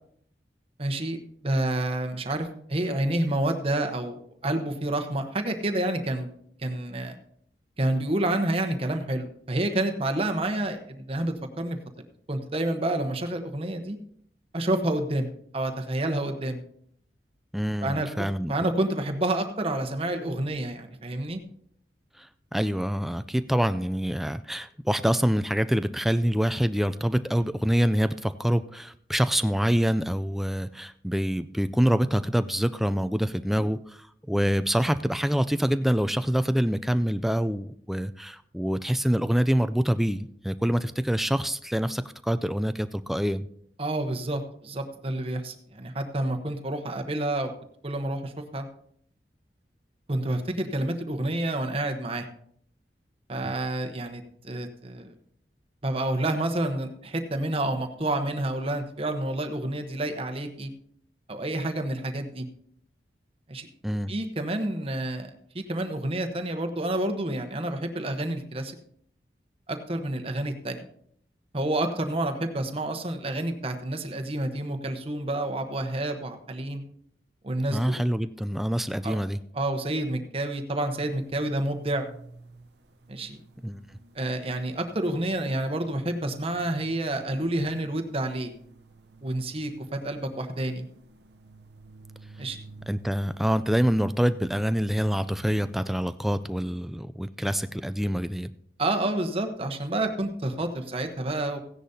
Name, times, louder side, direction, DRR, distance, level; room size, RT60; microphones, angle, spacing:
voice 1, 0.8-6.3 6.6-7.2 7.8-11.8 12.3-14.0 14.5-16.6 17.8-21.4 43.8-47.5 47.8-48.7 50.1-52.3 53.3-55.1 55.8-60.7 61.3-62.5 63.5-63.7 64.1-65.3 65.5-68.8 69.7-70.8 71.5-76.8 77.4-78.0 79.0-79.2 79.5-82.1 83.1-83.4 84.1-88.5 89.2-90.9 92.4-92.6 98.8-101.6, right 1 dB, 35° right, 5 dB, 1.0 m, -29 dB
voice 2, 17.5-18.5 22.2-43.5 53.4-53.5 63.8-64.1 77.7-79.4 83.6-83.8 92.9-98.5, equal, ahead, 12 dB, 0.3 m, -26 dB
sound 1, 80.9-96.2, right 3 dB, 70° right, 0.8 m, -50 dB
16.0 x 10.0 x 2.8 m, 0.66 s
head